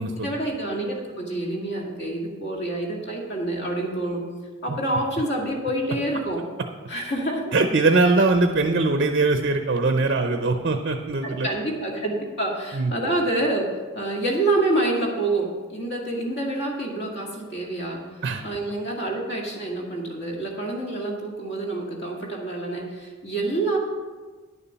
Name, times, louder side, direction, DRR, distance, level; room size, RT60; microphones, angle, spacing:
voice 1, 0.1-4.2 4.6-6.4 6.9-7.6 11.2-12.1 12.4-18.0 18.4-23.8, right 2 dB, 50° left, -1 dB, 2.0 m, -27 dB
voice 2, 7.5-11.5 12.7-12.9 18.2-18.4, right 3 dB, 45° right, 6 dB, 0.6 m, -21 dB
10.0 x 7.0 x 5.6 m, 1.4 s
head